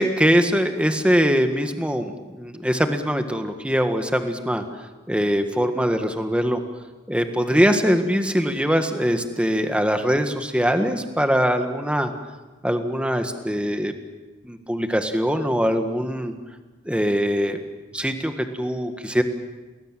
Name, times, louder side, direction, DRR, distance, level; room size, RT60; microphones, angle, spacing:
voice 1, 0.0-4.6 5.1-6.6 7.1-12.1 12.6-13.9 14.4-16.3 16.8-17.6 17.9-18.3 18.6-19.2, equal, 5° right, 6 dB, 1.6 m, -22 dB
29.5 x 20.0 x 7.6 m, 1.2 s
head